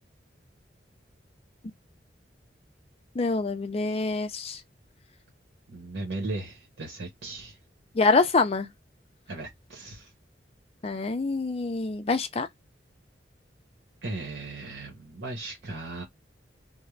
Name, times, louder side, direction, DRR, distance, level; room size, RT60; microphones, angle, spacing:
voice 1, 3.1-4.6 7.9-8.7 10.8-12.5, left 3 dB, 35° left, 0.4 m, -25 dB
voice 2, 5.7-7.6 9.3-10.1 14.0-16.0, right 2 dB, 80° right, 0.9 m, -37 dB
2.5 x 2.0 x 3.1 m
head